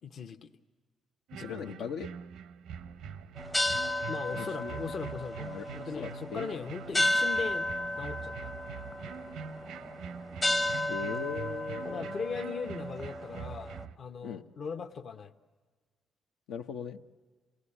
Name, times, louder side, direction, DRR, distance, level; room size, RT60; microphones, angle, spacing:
voice 1, 0.0-0.5 1.3-2.0 4.1-5.5 5.7-7.7 8.0-8.5 11.8-15.3, left 5 dB, 55° left, 6 dB, 0.9 m, -39 dB
voice 2, 1.3-2.1 4.4-4.8 5.4-6.6 10.9-12.2 14.2-14.4 16.5-17.0, left 6 dB, 85° left, 4 dB, 0.8 m, -40 dB
sound 1, 1.3-14.0, right 7 dB, 85° right, 0.6 m, -44 dB
sound 2, 3.4-13.8, left 1 dB, 15° left, 0.7 m, -33 dB
27.0 x 18.0 x 9.9 m, 1.5 s
cardioid pair, 90°, 0 cm